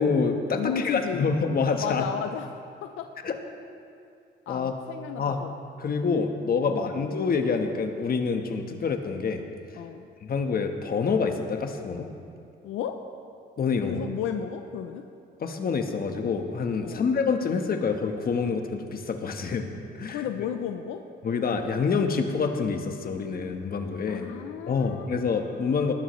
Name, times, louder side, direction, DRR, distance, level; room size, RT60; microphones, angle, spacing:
voice 1, 0.0-2.0 3.2-3.4 4.5-4.8 5.2-5.4 5.8-9.4 10.2-12.1 13.6-14.0 15.4-19.7 20.0-20.3 21.2-24.3 24.7-25.9, left 5 dB, 50° left, 5 dB, 1.3 m, -27 dB
voice 2, 0.6-1.2 1.8-2.5 2.8-3.1 4.5-5.5 6.6-7.0 9.8-10.1 12.6-13.0 13.9-15.0 16.8-17.1 20.1-21.0 24.1-25.3 25.6-25.8, left 8 dB, 85° left, 7 dB, 0.6 m, -34 dB
19.0 x 11.0 x 3.2 m, 2.5 s
cardioid pair, 90°, 20 cm